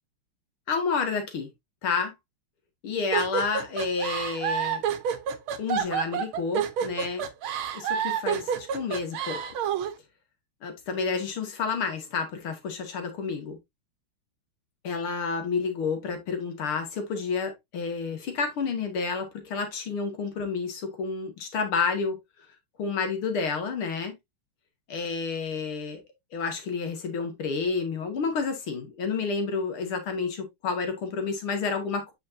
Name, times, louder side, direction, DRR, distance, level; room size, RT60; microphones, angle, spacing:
voice 1, 0.7-1.5 1.8-2.1 2.8-4.8 5.6-7.3 7.7-9.4 10.6-13.6 14.8-22.2 22.8-24.2 24.9-26.0 26.3-32.1, left 5 dB, 80° left, 2.7 m, -30 dB
sound 1, 3.1-9.9, right 8 dB, 80° right, 1.8 m, -28 dB
7.9 x 6.4 x 2.6 m
omnidirectional pair, 2.3 m